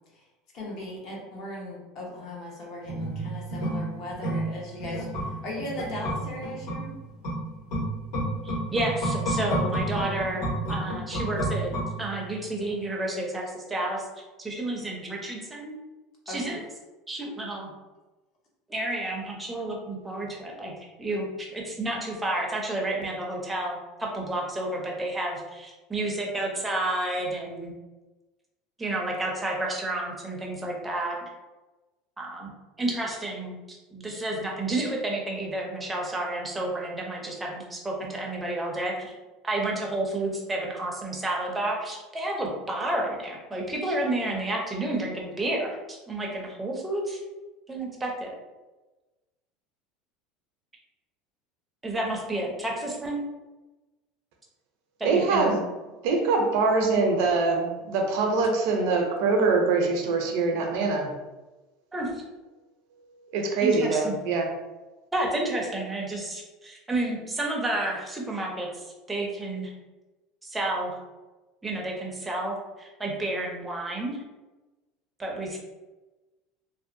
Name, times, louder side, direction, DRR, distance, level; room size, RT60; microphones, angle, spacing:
voice 1, 0.5-7.0 16.3-16.6, left 1 dB, 50° left, -2 dB, 0.8 m, -38 dB
sound 1, 2.8-12.4 12.7-12.8, right 1 dB, 70° left, 1.3 m, -31 dB
voice 2, 8.4-11.7 12.0-14.0 14.4-15.8 16.3-16.6 17.1-17.7 18.7-20.7 21.0-27.7 28.8-31.3 32.2-32.5 32.8-39.1 39.4-47.2 47.7-48.3 51.8-53.2 55.0-55.6 61.9-62.2 63.6-64.2 65.1-69.7 70.4-70.9 71.6-74.2 75.2-75.6, right 1 dB, 10° right, -2 dB, 0.5 m, -30 dB
voice 3, 55.0-55.6 56.0-61.1 63.3-64.5, right 3 dB, 70° right, 2 dB, 0.5 m, -23 dB
2.7 x 2.1 x 2.6 m, 1.1 s
supercardioid pair, 140°, 0 cm